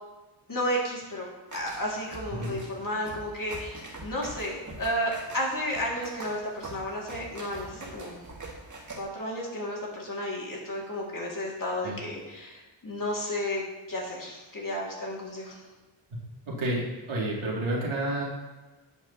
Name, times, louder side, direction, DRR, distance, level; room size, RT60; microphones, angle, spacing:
voice 1, 0.5-8.2 8.9-15.6, equal, 45° left, -3 dB, 2.3 m, -33 dB
sound 1, 1.5-9.0, right 2 dB, 40° right, 1.8 m, -44 dB
voice 2, 16.5-16.8 17.1-18.2, right 1 dB, 85° right, -4 dB, 2.6 m, -29 dB
11.0 x 8.3 x 2.9 m, 1.2 s
wide cardioid pair, 85°, 48 cm